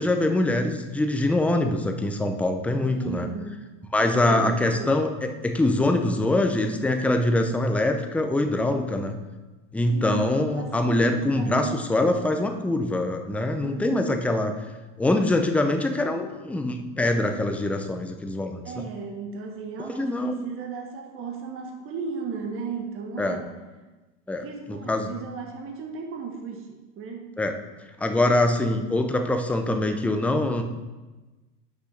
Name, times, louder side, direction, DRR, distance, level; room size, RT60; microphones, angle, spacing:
voice 1, 0.0-3.3 3.9-9.2 9.7-14.5 15.0-18.6 19.8-20.4 23.2-23.4 24.3-25.1 27.4-27.5 28.0-30.6, left 2 dB, 5° left, 5 dB, 0.5 m, -24 dB
voice 2, 2.9-3.7 4.0-4.9 9.9-11.8 13.6-14.2 18.6-23.5 24.4-27.3, right 5 dB, 35° right, 2 dB, 1.4 m, -35 dB
6.4 x 5.7 x 5.7 m, 1.2 s
supercardioid pair, 120°, 37 cm